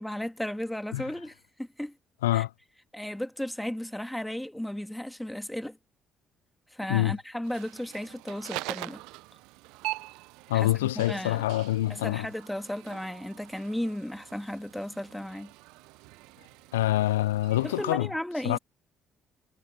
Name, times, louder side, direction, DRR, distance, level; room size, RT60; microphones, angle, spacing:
voice 1, 0.0-1.9 2.3-2.4 2.9-5.8 6.7-9.0 10.5-11.4 11.9-15.5 17.6-18.6, left 1 dB, 5° left, 2.0 m, -35 dB
sound 1, 7.4-17.9, right 22 dB, 75° right, 0.4 m, -43 dB
voice 2, 10.5-12.3 16.7-18.1 18.4-18.6, left 15 dB, 85° left, 0.3 m, -26 dB
hypercardioid pair, 50°, 0 cm